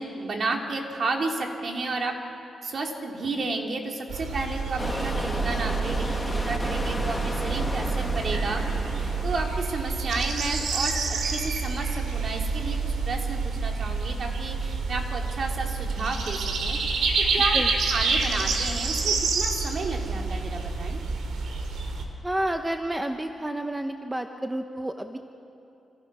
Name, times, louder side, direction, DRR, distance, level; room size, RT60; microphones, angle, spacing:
voice 1, 0.0-2.2 2.6-8.7 9.0-17.1 17.3-17.6 17.9-21.0, right 3 dB, 45° right, 1 dB, 3.1 m, -32 dB
sound 1, 4.1-22.0, right 4 dB, 85° right, 3.5 m, -28 dB
sound 2, 4.8-9.7, left 1 dB, 10° left, 1.5 m, -33 dB
voice 2, 22.2-25.2, right 1 dB, 10° right, 5 dB, 0.9 m, -30 dB
28.0 x 27.0 x 6.3 m, 2.8 s
cardioid pair, 125°, 0 cm